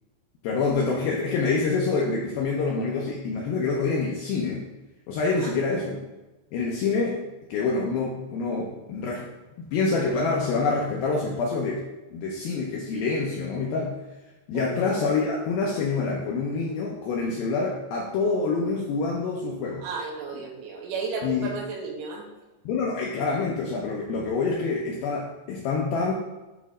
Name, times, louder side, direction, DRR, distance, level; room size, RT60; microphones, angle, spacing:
voice 1, 0.4-4.6 5.1-6.1 6.5-7.2 7.5-9.3 9.6-11.8 12.1-14.0 14.5-19.9 21.2-21.5 22.7-26.1, left 4 dB, 80° left, -2 dB, 2.2 m, -26 dB
voice 2, 5.3-5.6 14.5-15.0 19.8-22.3, right 4 dB, 80° right, -1 dB, 3.5 m, -34 dB
9.2 x 3.1 x 4.8 m, 1.1 s
omnidirectional pair, 5.1 m